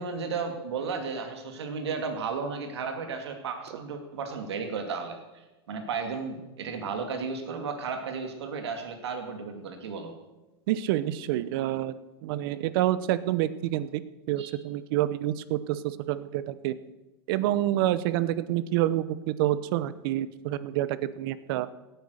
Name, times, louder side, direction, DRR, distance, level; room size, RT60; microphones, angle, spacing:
voice 1, 0.0-10.1 14.4-14.5, right 5 dB, 80° right, 5 dB, 2.3 m, -34 dB
voice 2, 10.7-11.9 12.2-14.0 14.3-16.7 17.3-21.7, right 13 dB, 60° right, 15 dB, 0.9 m, -28 dB
17.0 x 9.2 x 6.5 m, 1.1 s
hypercardioid pair, 115°, 14 cm